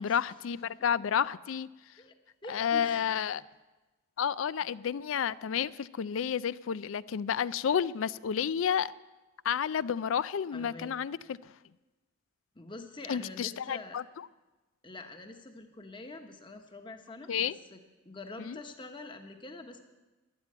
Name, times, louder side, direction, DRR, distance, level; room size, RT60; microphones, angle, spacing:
voice 1, 0.0-1.7 2.5-3.4 4.2-8.9 9.4-11.5 13.1-14.3 17.3-17.6 18.4-18.6, left 8 dB, 75° left, 19 dB, 0.4 m, -31 dB
voice 2, 2.4-3.1 10.5-10.9 12.5-14.0 14.8-17.8 18.0-19.8, left 2 dB, 25° left, 6 dB, 1.2 m, -45 dB
12.5 x 10.5 x 8.6 m, 1.2 s
head